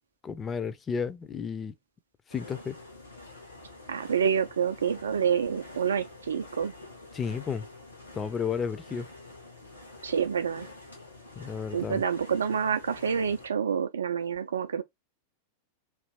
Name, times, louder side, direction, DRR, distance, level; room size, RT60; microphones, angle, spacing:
voice 1, 0.2-1.7 2.3-2.8 7.1-7.6 8.1-9.1 11.4-12.0, left 6 dB, 20° left, 0.5 m, -32 dB
sound 1, 2.3-13.5, left 2 dB, 85° left, 1.4 m, -47 dB
voice 2, 3.9-6.7 10.0-10.7 11.7-14.8, right 7 dB, 70° right, 0.3 m, -28 dB
3.2 x 2.5 x 3.3 m
figure-of-eight pair, 90°, 0 cm